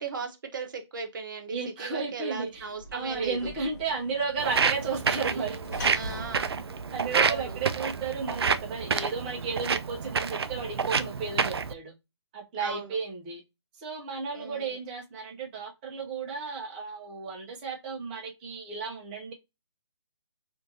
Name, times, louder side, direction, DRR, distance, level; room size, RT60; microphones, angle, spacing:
voice 1, 0.0-3.5 5.9-6.6 7.1-7.5 12.6-12.8 14.3-14.7, right 5 dB, 45° right, 0.9 m, -36 dB
voice 2, 1.5-5.6 6.9-11.9 12.3-13.4 13.7-19.3, right 5 dB, 20° right, 0.7 m, -33 dB
Sliding door / Slam, 2.5-7.9, left 2 dB, 35° left, 0.9 m, -44 dB
Walk footsteps, 4.4-11.7, right 5 dB, 60° right, 0.4 m, -29 dB
4.5 x 2.6 x 2.6 m
figure-of-eight pair, 145°, 15 cm